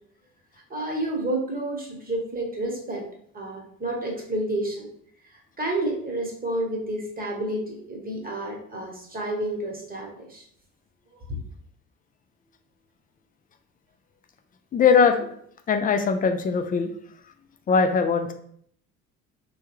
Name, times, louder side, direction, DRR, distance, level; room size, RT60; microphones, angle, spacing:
voice 1, 0.7-3.1 3.3-4.9 5.2-10.4 11.3-11.4, right 1 dB, 20° right, -1 dB, 1.1 m, -30 dB
voice 2, 14.7-15.3 15.7-16.9 17.7-18.3, left 5 dB, 25° left, 7 dB, 0.4 m, -20 dB
3.4 x 2.3 x 3.1 m, 0.65 s
hypercardioid pair, 60°, 39 cm